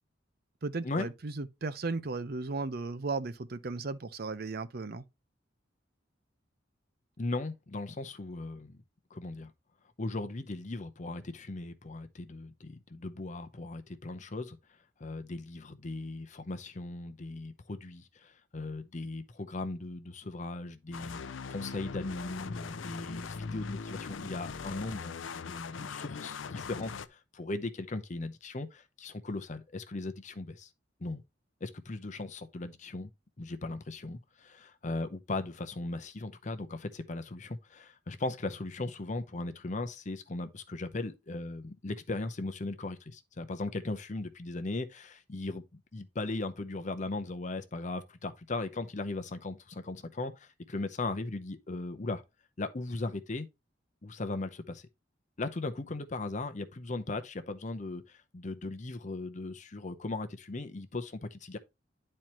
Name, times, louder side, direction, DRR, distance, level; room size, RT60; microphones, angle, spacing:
voice 1, 0.6-5.0, right 3 dB, 55° right, 0.6 m, -35 dB
voice 2, 7.2-8.8 9.1-9.5 10.0-14.6 15.0-21.2 21.5-25.2 25.5-30.7 31.0-31.2 31.6-33.1 33.4-52.2 52.6-53.5 54.0-54.8 55.4-61.6, left 2 dB, 40° left, 0.7 m, -38 dB
sound 1, 20.9-27.1, left 5 dB, 90° left, 0.5 m, -40 dB
10.5 x 4.4 x 3.0 m
head